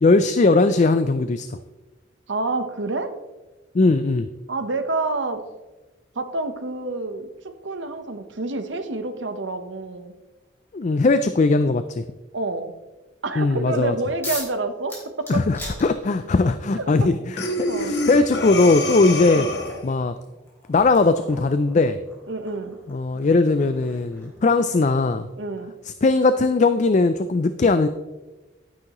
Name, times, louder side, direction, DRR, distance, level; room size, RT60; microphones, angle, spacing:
voice 1, 0.0-1.6 3.7-4.3 10.7-12.0 13.4-13.9 15.3-19.5 19.8-20.1 20.7-22.0 22.9-25.3 26.0-27.9, left 3 dB, 40° left, 11 dB, 0.4 m, -19 dB
voice 2, 2.3-3.1 4.5-5.4 6.1-10.1 12.3-12.7 13.2-15.4 16.8-17.1 17.7-17.9 19.3-19.5 22.3-22.8 25.4-25.7, right 3 dB, 80° right, 8 dB, 1.0 m, -28 dB
sound 1, 14.2-14.6 14.9-16.4 17.6-17.7 18.2-24.8, left 1 dB, 15° left, 3.2 m, -40 dB
Breathing, 17.4-19.9, left 2 dB, 60° left, 1.4 m, -27 dB
11.5 x 9.6 x 3.0 m, 1.1 s
head